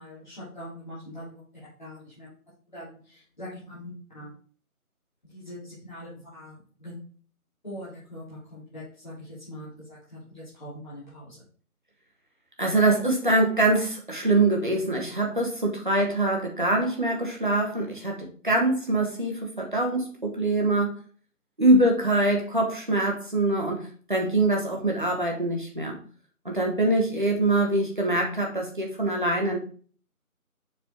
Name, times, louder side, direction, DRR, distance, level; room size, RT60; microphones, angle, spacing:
voice 1, 0.0-1.4 1.8-2.3 2.7-4.3 5.2-6.9 7.6-11.4 26.8-27.1, equal, 30° left, -11 dB, 3.0 m, -42 dB
voice 2, 12.6-21.0 21.6-26.0 26.4-29.6, right 2 dB, 35° right, 0 dB, 1.4 m, -24 dB
7.2 x 4.1 x 3.8 m, 0.42 s
figure-of-eight pair, 175°, 44 cm